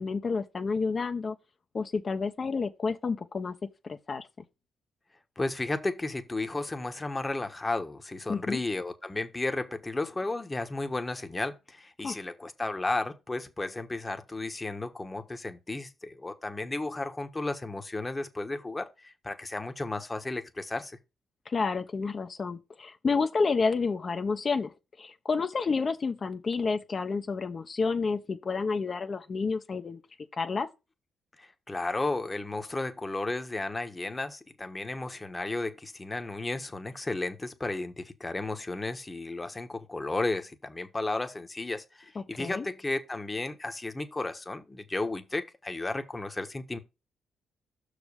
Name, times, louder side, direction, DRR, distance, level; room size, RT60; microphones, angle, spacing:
voice 1, 0.0-1.4 1.7-3.5 3.8-4.3 8.3-8.6 12.0-12.2 21.5-24.7 25.0-30.0 30.3-30.7 42.4-42.7, left 4 dB, 40° left, 1.0 m, -30 dB
voice 2, 5.4-21.0 31.4-46.8, left 2 dB, 20° left, 1.2 m, -33 dB
6.1 x 5.0 x 5.4 m
cardioid pair, 90°, 0 cm